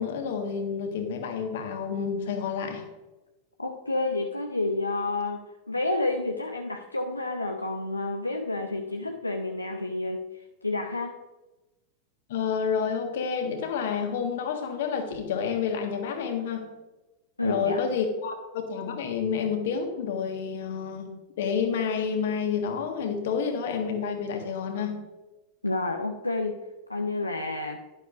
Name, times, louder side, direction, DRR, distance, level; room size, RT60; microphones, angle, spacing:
voice 1, 0.0-2.8 12.3-16.7 17.4-25.0, left 6 dB, 55° left, 4 dB, 1.7 m, -29 dB
voice 2, 3.6-10.2 10.6-11.1 17.4-17.8 25.6-26.6 26.9-27.8, left 2 dB, 85° left, 3 dB, 0.6 m, -29 dB
11.5 x 11.0 x 2.6 m, 1.1 s
figure-of-eight pair, 90°, 0 cm